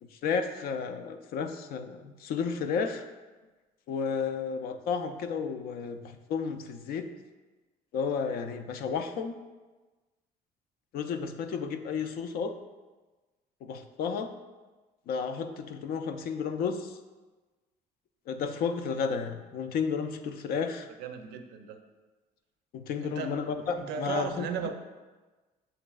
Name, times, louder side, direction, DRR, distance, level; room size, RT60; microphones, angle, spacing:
voice 1, 0.0-3.1 3.9-7.1 7.9-9.4 10.9-12.5 13.6-14.3 15.1-17.0 18.3-20.9 22.7-24.7, left 6 dB, 65° left, 8 dB, 0.4 m, -32 dB
voice 2, 21.0-21.8 23.0-23.3 23.7-24.7, right 7 dB, 80° right, 6 dB, 0.5 m, -36 dB
6.5 x 3.1 x 2.3 m, 1.2 s
cardioid pair, 110°, 17 cm